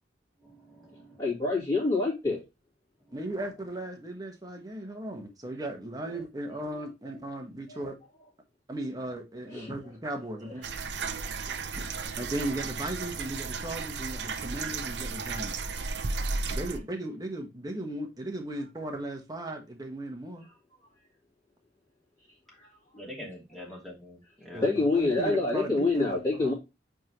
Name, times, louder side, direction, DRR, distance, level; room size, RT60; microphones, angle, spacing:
voice 1, 0.4-1.2 23.0-24.6, left 1 dB, ahead, 2.8 m, -45 dB
voice 2, 1.2-2.4 6.1-6.2 6.7-7.1 7.7-7.8 9.4-9.9 10.3-11.3 12.0-12.2 16.1-16.2 16.4-16.6 20.4-20.5 22.5-23.1 23.5-23.6 24.6-26.5, left 3 dB, 20° left, 3.1 m, -29 dB
voice 3, 3.1-7.9 8.7-10.6 11.5-11.6 12.2-15.5 16.5-20.5 24.5-24.6 25.0-26.5, right 1 dB, 20° right, 1.3 m, -36 dB
sound 1, 10.6-16.8, right 4 dB, 70° right, 0.7 m, -34 dB
8.4 x 3.8 x 3.0 m
head